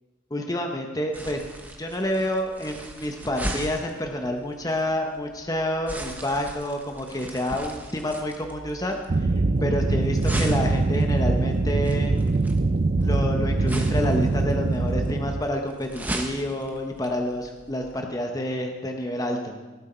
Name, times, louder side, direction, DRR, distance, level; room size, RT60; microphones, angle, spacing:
voice 1, 0.3-1.5 1.8-9.3 9.6-12.2 13.0-19.6, left 1 dB, 20° left, 3 dB, 1.0 m, -28 dB
sound 1, 1.1-18.0, right 1 dB, 10° right, 0.9 m, -38 dB
sound 2, 9.1-15.4, right 3 dB, 40° right, 0.5 m, -23 dB
18.5 x 7.8 x 4.5 m, 1.2 s
head